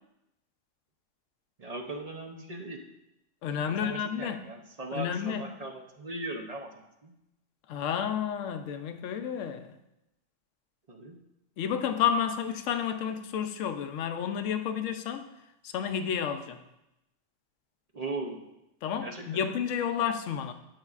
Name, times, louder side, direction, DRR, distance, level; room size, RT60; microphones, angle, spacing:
voice 1, 1.6-2.8 3.7-7.1 10.9-11.2 17.9-18.5 19.0-19.2, right 2 dB, 40° right, 0.6 m, -39 dB
voice 2, 3.4-4.5 4.9-5.5 7.7-9.8 11.6-15.3 15.6-16.6 18.8-20.5, left 8 dB, 80° left, 1.0 m, -31 dB
12.0 x 6.4 x 2.4 m
omnidirectional pair, 1.3 m